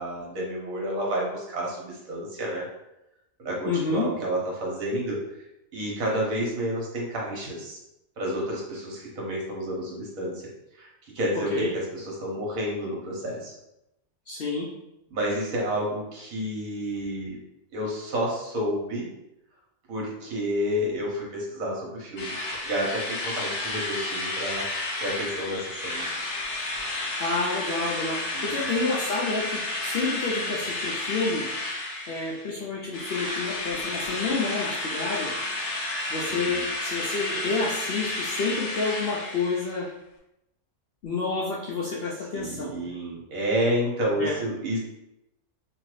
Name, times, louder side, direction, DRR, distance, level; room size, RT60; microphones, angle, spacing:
voice 1, 0.0-2.6 3.4-5.2 5.7-7.8 8.2-10.4 10.8-13.5 15.1-17.4 17.7-19.1 19.9-22.4 22.6-26.1 28.3-28.7 36.3-36.7 42.3-44.8, equal, 65° right, -3 dB, 1.3 m, -30 dB
voice 2, 3.7-4.1 11.5-11.7 14.3-14.7 27.2-31.5 32.1-35.3 36.1-39.9 41.0-42.9 44.2-44.4, left 3 dB, 90° left, -4 dB, 0.5 m, -29 dB
Drill, 22.2-32.6 32.9-39.8, left 2 dB, 65° left, 1.1 m, -31 dB
2.9 x 2.6 x 3.1 m, 0.87 s
omnidirectional pair, 1.6 m